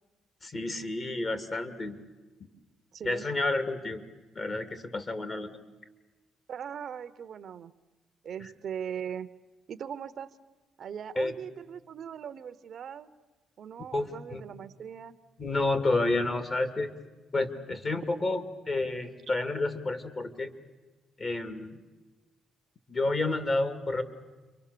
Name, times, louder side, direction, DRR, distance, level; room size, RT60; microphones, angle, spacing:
voice 1, 0.4-2.0 3.0-4.0 4.4-5.6 11.2-11.3 13.9-14.4 15.4-16.9 17.3-20.5 21.2-21.8 22.9-24.0, left 2 dB, 40° left, 9 dB, 2.4 m, -30 dB
voice 2, 2.9-3.3 6.5-7.7 8.2-9.3 9.7-10.4 10.8-13.1 13.6-15.2, right 8 dB, 60° right, 13 dB, 0.9 m, -40 dB
29.5 x 24.0 x 6.8 m, 1.2 s
cardioid pair, 90°, 0 cm